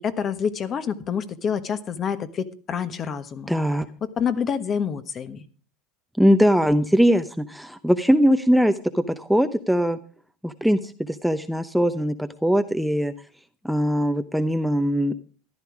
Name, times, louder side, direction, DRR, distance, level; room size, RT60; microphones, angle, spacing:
voice 1, 0.0-3.5 4.0-5.4, left 7 dB, 35° left, 12 dB, 1.3 m, -27 dB
voice 2, 3.5-3.9 6.2-10.0 10.4-12.1 12.4-13.1 13.6-15.1, equal, ahead, 9 dB, 0.8 m, -21 dB
14.0 x 11.5 x 4.9 m, 0.40 s
supercardioid pair, 120°, 0 cm